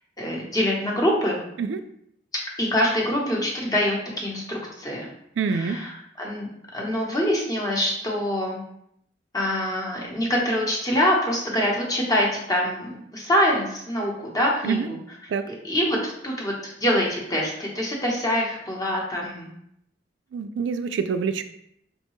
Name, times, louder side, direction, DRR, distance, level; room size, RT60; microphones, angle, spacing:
voice 1, 0.2-1.4 2.6-5.0 5.5-5.9 6.2-6.5 6.7-8.6 9.3-15.0 15.5-19.5, equal, 20° left, -2 dB, 0.8 m, -25 dB
voice 2, 5.4-5.8 14.6-14.9 15.3-15.5 20.3-21.4, right 5 dB, 75° right, 9 dB, 0.3 m, -26 dB
5.4 x 2.2 x 3.0 m, 0.75 s
head